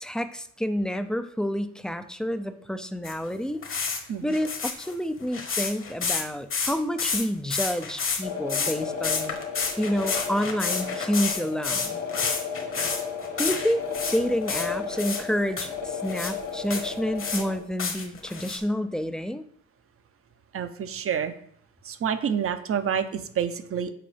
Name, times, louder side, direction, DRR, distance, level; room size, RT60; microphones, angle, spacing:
voice 1, 0.0-3.6 4.2-9.4 9.8-12.0 13.4-19.4, equal, ahead, 10 dB, 0.4 m, -29 dB
sound 1, 3.0-3.1 3.6-4.0 4.3-6.2 6.5-7.3 7.5-8.2 8.5-8.8 9.0-14.2 14.5-15.2 15.6-15.7 16.1-16.3 16.7-17.4 17.8-18.6, left 5 dB, 45° left, 1.3 m, -29 dB
sound 2, 8.2-17.6, left 6 dB, 70° left, 1.7 m, -34 dB
voice 2, 20.5-21.3 21.8-23.9, right 8 dB, 50° right, 10 dB, 0.7 m, -28 dB
7.8 x 4.5 x 3.4 m, 0.65 s
cardioid pair, 90°, 30 cm